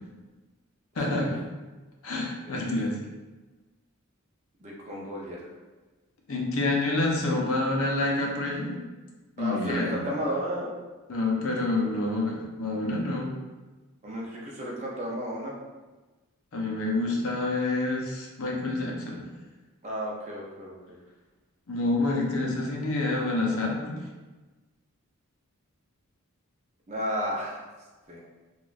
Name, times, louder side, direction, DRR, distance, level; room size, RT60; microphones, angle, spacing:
voice 1, 1.0-1.4 2.0-3.0 6.3-8.8 9.4-10.1 11.1-13.3 16.5-19.3 21.7-23.9, left 2 dB, 65° left, -1 dB, 0.5 m, -28 dB
voice 2, 4.6-5.4 9.4-10.7 14.0-15.5 19.8-20.7 26.9-27.6 28.1-28.2, equal, 30° right, -3 dB, 0.5 m, -33 dB
2.9 x 2.2 x 2.4 m, 1.2 s
head